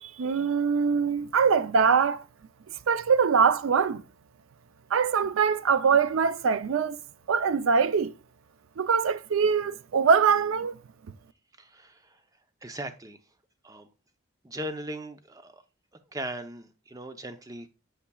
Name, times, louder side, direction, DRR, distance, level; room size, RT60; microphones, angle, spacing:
voice 1, 0.0-2.2 2.9-4.0 4.9-7.0 7.3-8.1 8.8-10.8, right 6 dB, 85° right, 0.4 m, -23 dB
voice 2, 11.6-12.0 12.6-13.2 13.6-13.9 14.4-15.6 16.1-17.7, right 1 dB, 15° right, 0.6 m, -38 dB
8.4 x 5.9 x 2.3 m
head